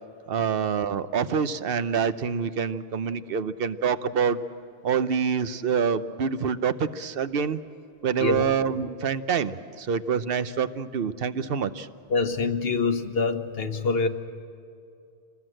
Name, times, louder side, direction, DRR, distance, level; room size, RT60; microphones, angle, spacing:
voice 1, 0.3-4.4 4.8-7.6 8.0-11.9, right 6 dB, 65° right, 12 dB, 1.0 m, -26 dB
voice 2, 12.1-14.1, left 4 dB, 65° left, 8 dB, 1.4 m, -25 dB
27.5 x 20.0 x 7.8 m, 2.4 s
omnidirectional pair, 1.1 m